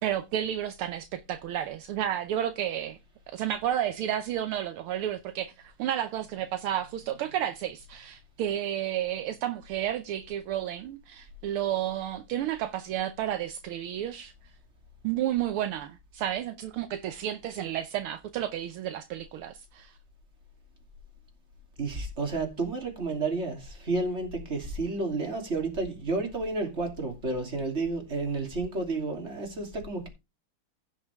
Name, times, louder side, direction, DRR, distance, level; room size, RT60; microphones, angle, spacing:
voice 1, 0.0-3.0 3.3-14.3 15.0-20.0, right 11 dB, 75° right, 1.6 m, -31 dB
voice 2, 21.8-30.1, right 3 dB, 30° right, 3.1 m, -31 dB
16.0 x 6.1 x 3.5 m
omnidirectional pair, 2.4 m